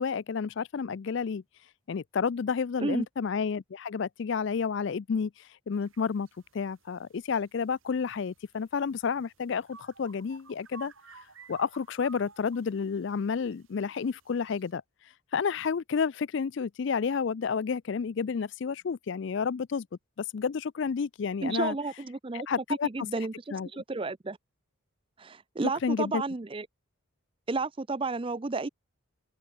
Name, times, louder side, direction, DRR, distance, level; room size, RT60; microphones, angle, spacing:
voice 1, 0.0-1.4 1.9-5.3 5.7-6.3 6.5-10.9 11.5-14.8 15.3-19.9 20.3-21.8 22.3-22.9 23.5-23.7 25.8-26.2, left 6 dB, 55° left, 0.4 m, -30 dB
sound 1, 5.7-14.7, right 5 dB, 70° right, 6.5 m, -55 dB
voice 2, 21.4-22.5 22.8-23.3 23.7-24.4 25.2-26.7 27.5-28.7, right 3 dB, 25° right, 0.5 m, -31 dB
open air
head